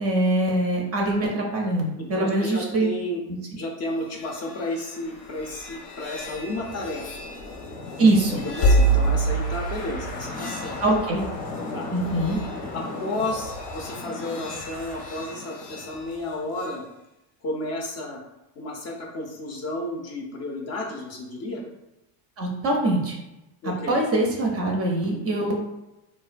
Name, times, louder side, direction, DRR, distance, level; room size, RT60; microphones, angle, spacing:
voice 1, 0.0-2.9 8.0-8.4 10.8-11.2 11.9-12.4 22.4-23.2 23.6-25.5, right 2 dB, 35° right, 0 dB, 0.4 m, -23 dB
voice 2, 2.0-3.2 3.6-7.3 8.3-10.8 11.7-11.9 12.7-16.8 17.4-18.2 18.6-21.6 23.6-24.0, left 2 dB, 35° left, 0 dB, 0.5 m, -32 dB
sound 1, 3.9-16.8, right 1 dB, 85° left, 0.8 m, -29 dB
3.0 x 2.2 x 2.4 m, 0.94 s
supercardioid pair, 120°, 47 cm